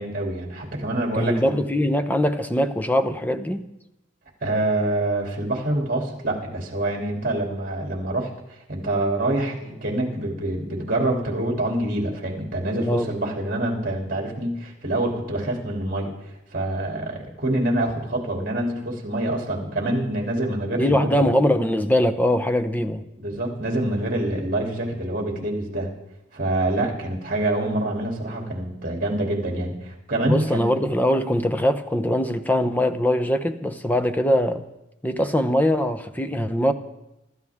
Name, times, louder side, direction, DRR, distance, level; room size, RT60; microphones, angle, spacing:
voice 1, 0.0-1.5 4.4-21.3 23.2-25.9 26.3-30.7, right 1 dB, 50° right, 0 dB, 3.0 m, -26 dB
voice 2, 1.1-3.7 12.8-13.1 20.7-23.0 30.2-34.6 35.0-36.7, equal, 10° left, 9 dB, 0.8 m, -22 dB
26.0 x 13.0 x 3.6 m, 0.91 s
head